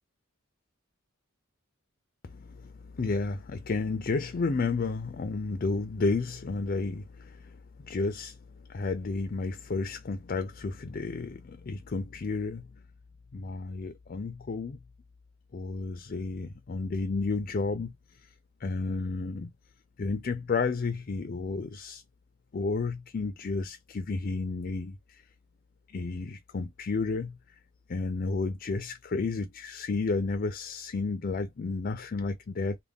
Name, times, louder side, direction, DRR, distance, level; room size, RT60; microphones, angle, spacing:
voice 1, 2.3-8.4 8.7-12.7 13.3-14.8 15.5-17.9 18.6-19.5 20.0-22.0 22.5-25.2 25.9-27.4 27.9-32.8, left 3 dB, 45° left, 0.4 m, -32 dB
3.4 x 2.2 x 3.5 m
head